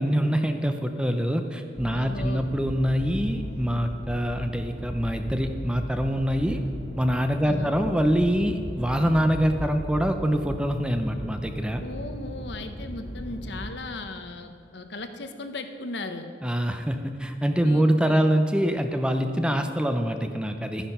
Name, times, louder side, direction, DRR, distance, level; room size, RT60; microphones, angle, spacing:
voice 1, 0.0-6.6 7.0-11.8 16.4-20.9, equal, 5° right, 6 dB, 0.6 m, -25 dB
sound 1, 1.8-13.7, equal, 35° left, 1.8 m, -37 dB
voice 2, 1.9-2.5 7.4-7.8 11.8-16.3 17.6-18.3, left 2 dB, 65° left, 7 dB, 0.9 m, -37 dB
12.5 x 10.0 x 5.4 m, 2.6 s
head